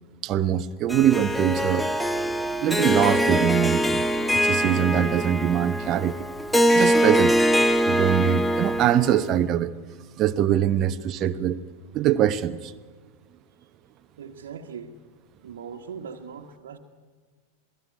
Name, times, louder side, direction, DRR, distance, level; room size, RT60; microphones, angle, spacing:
voice 1, 0.2-1.9 2.6-4.0 4.3-6.3 6.7-7.4 7.8-9.7 10.2-11.6 11.9-12.7, right 10 dB, 35° right, 9 dB, 1.0 m, -23 dB
Harp, 0.9-9.3, equal, 5° left, 1.1 m, -23 dB
voice 2, 14.2-15.0 15.4-16.8, right 6 dB, 60° right, 1 dB, 1.5 m, -39 dB
27.0 x 18.5 x 9.4 m, 1.5 s
figure-of-eight pair, 90°, 0 cm